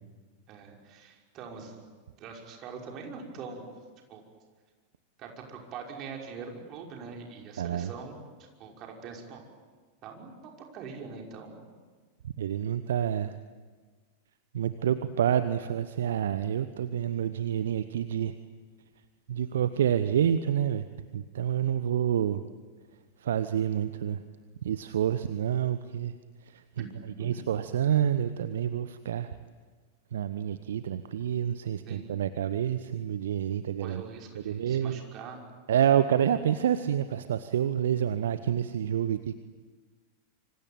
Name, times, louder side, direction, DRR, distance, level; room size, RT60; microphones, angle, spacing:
voice 1, 0.5-1.8 2.2-3.7 4.1-4.2 5.2-8.2 8.6-9.4 10.0-11.7 26.8-26.9 27.2-27.4 31.9-32.2 33.8-35.5, right 5 dB, 35° right, 1 dB, 5.7 m, -43 dB
voice 2, 7.6-7.9 12.4-13.3 14.5-18.3 19.3-20.9 21.1-22.4 23.2-24.2 24.6-26.1 26.5-26.8 27.2-29.3 30.1-34.0 34.3-35.0 35.7-39.4, right 9 dB, 60° right, 12 dB, 1.0 m, -28 dB
26.5 x 25.5 x 8.9 m, 1.4 s
figure-of-eight pair, 90°, 0 cm